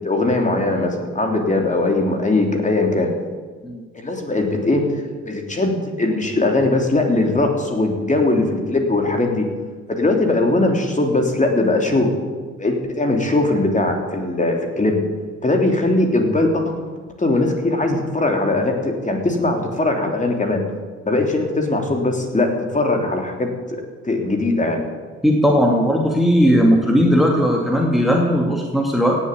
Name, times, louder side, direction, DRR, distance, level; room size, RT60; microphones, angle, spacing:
voice 1, 0.0-3.1 3.9-5.0 5.3-9.4 9.9-12.1 12.6-15.0 15.4-16.7 17.2-20.6 21.0-23.8 24.0-24.8, left 2 dB, 20° left, 3 dB, 3.2 m, -20 dB
voice 2, 25.2-29.2, equal, ahead, 0 dB, 2.2 m, -17 dB
17.5 x 7.4 x 8.6 m, 1.5 s
hypercardioid pair, 55°, 37 cm